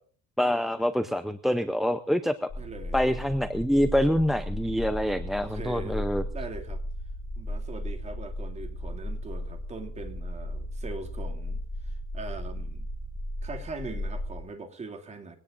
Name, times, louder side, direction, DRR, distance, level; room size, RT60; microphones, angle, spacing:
voice 1, 0.4-2.5 2.9-6.2, equal, ahead, 9 dB, 0.6 m, -26 dB
sound 1, 2.5-14.4, left 1 dB, 20° left, 5.9 m, -35 dB
voice 2, 2.6-3.0 5.4-6.8 7.4-12.9 13.4-15.4, right 3 dB, 25° right, 5 dB, 2.4 m, -41 dB
22.5 x 17.5 x 2.5 m, 0.42 s
cardioid pair, 160°, 29 cm